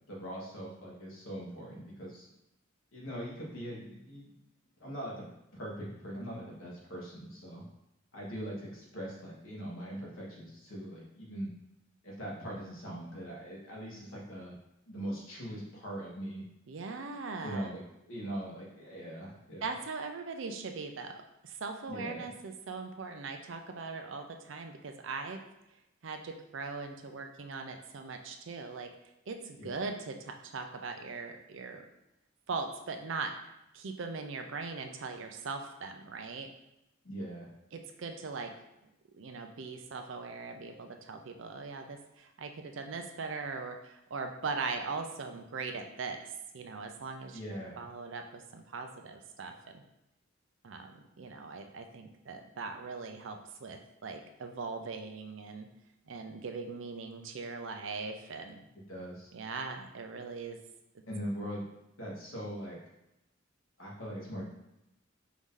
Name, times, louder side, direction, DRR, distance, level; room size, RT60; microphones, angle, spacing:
voice 1, 0.1-2.3 2.9-4.3 4.8-5.3 5.5-7.6 8.1-11.5 12.0-14.6 14.9-16.4 17.4-19.6 21.9-22.3 29.6-29.8 37.0-37.5 47.3-47.8 58.9-59.3 61.1-61.6 62.0-62.8 63.8-64.5, equal, 75° left, -4 dB, 1.4 m, -41 dB
voice 2, 16.7-17.7 19.6-25.4 26.0-28.9 29.3-31.9 32.5-33.3 33.7-36.5 37.7-38.5 39.1-47.4 47.8-49.8 50.6-55.7 56.1-58.6 59.3-60.6, right 4 dB, 65° right, 5 dB, 0.5 m, -40 dB
4.7 x 2.7 x 3.7 m, 0.87 s
head